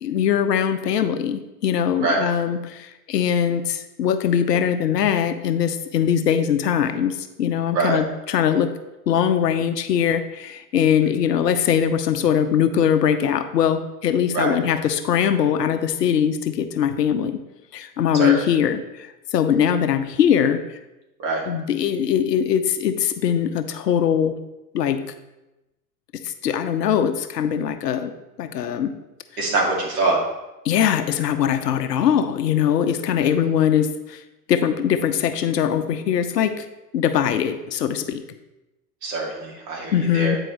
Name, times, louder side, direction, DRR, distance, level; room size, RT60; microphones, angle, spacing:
voice 1, 0.0-8.7 9.1-17.4 17.7-20.6 21.5-24.3 24.7-25.0 26.2-28.1 28.4-28.9 30.6-34.2 34.5-36.7 36.9-38.2 39.9-40.4, left 8 dB, 80° left, 10 dB, 0.7 m, -21 dB
voice 2, 29.4-30.2 39.0-40.4, right 3 dB, 50° right, -1 dB, 2.2 m, -23 dB
8.8 x 4.6 x 3.1 m, 0.98 s
hypercardioid pair, 95°, 48 cm